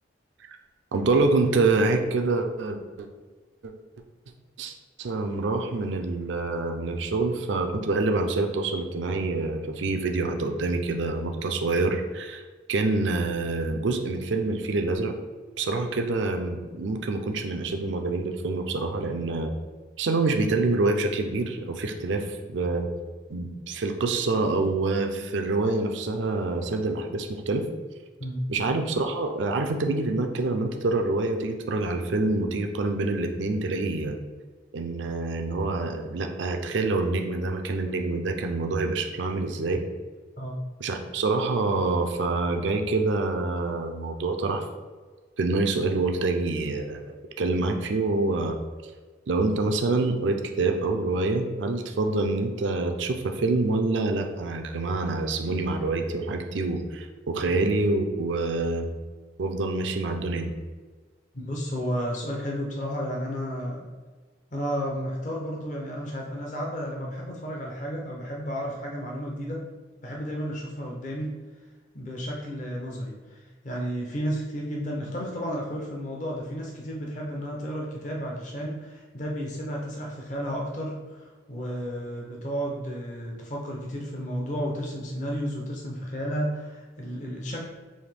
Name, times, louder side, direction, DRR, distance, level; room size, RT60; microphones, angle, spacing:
voice 1, 0.9-3.1 3.6-3.7 4.6-12.4 12.7-15.1 15.6-19.5 20.0-22.9 23.3-27.6 28.5-34.2 34.7-39.8 40.8-44.6 45.4-48.6 49.3-58.9 59.4-60.5, right 3 dB, 80° right, 4 dB, 0.5 m, -26 dB
voice 2, 61.3-63.9 64.5-69.6 70.0-71.3 71.9-87.6, equal, 40° left, -2 dB, 0.6 m, -32 dB
5.5 x 2.6 x 3.3 m, 1.4 s
head